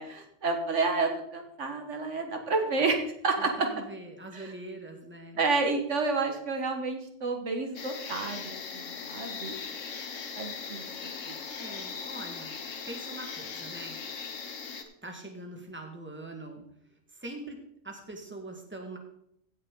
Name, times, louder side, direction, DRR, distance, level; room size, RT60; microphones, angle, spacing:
voice 1, 0.0-3.0 3.2-3.7 4.3-4.5 5.4-9.5 10.4-11.4, right 3 dB, 75° right, 4 dB, 1.7 m, -30 dB
voice 2, 3.4-5.4 11.5-12.5 12.9-14.0 15.0-16.6 17.1-19.0, right 2 dB, 10° right, 3 dB, 1.7 m, -43 dB
sound 1, 7.8-14.8, left 5 dB, 85° left, 1.5 m, -39 dB
16.0 x 6.6 x 3.8 m, 0.73 s
omnidirectional pair, 1.3 m